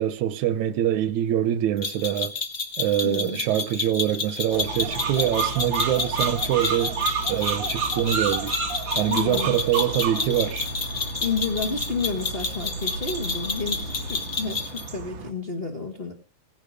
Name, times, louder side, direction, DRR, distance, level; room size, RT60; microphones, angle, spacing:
voice 1, 0.0-2.4 2.8-7.0 7.3-8.6 9.0-10.7, right 11 dB, 80° right, 2.3 m, -24 dB
sound 1, 1.8-14.9, left 4 dB, 65° left, 0.5 m, -30 dB
voice 2, 3.0-3.4 9.1-9.6 11.2-16.1, left 4 dB, 25° left, 1.3 m, -30 dB
Engine, 4.5-14.2, left 1 dB, 45° left, 2.7 m, -37 dB
sound 2, 4.5-15.3, right 6 dB, 50° right, 1.7 m, -32 dB
16.5 x 10.5 x 6.4 m
omnidirectional pair, 3.3 m